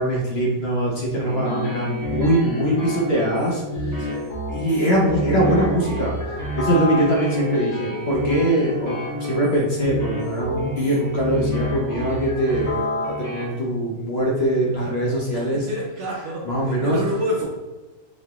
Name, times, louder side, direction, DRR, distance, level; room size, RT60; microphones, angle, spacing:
voice 1, 0.0-4.0 4.5-6.1 6.6-15.6 16.4-17.0, right 1 dB, 50° left, -2 dB, 0.9 m, -22 dB
sound 1, 1.3-13.4, left 1 dB, 15° left, 1.1 m, -29 dB
voice 2, 4.0-4.3 15.3-17.4, equal, 55° right, -2 dB, 1.0 m, -28 dB
3.9 x 3.2 x 3.6 m, 1.1 s
omnidirectional pair, 1.6 m